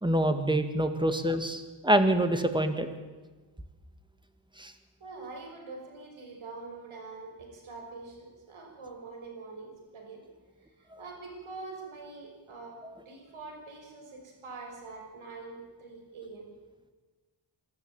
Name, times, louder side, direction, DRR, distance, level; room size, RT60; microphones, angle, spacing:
voice 1, 0.0-2.9 4.6-4.7 10.9-11.0, right 1 dB, 10° right, 8 dB, 2.1 m, -26 dB
voice 2, 5.0-10.3 10.8-16.5, right 3 dB, 85° right, 1 dB, 5.9 m, -44 dB
24.5 x 13.5 x 9.0 m, 1.3 s
wide cardioid pair, 100°, 48 cm